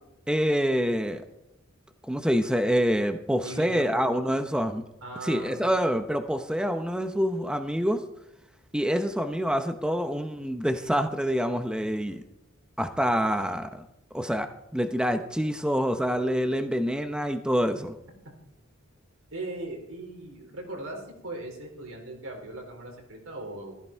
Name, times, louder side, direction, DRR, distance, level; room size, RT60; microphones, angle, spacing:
voice 1, 0.3-1.2 2.1-4.8 5.2-8.0 8.7-12.2 12.8-13.8 14.1-17.9, equal, 5° right, 7 dB, 0.8 m, -26 dB
voice 2, 3.4-3.9 5.0-5.6 19.3-23.8, right 2 dB, 80° right, 1 dB, 4.5 m, -39 dB
14.5 x 14.5 x 4.6 m, 0.82 s
head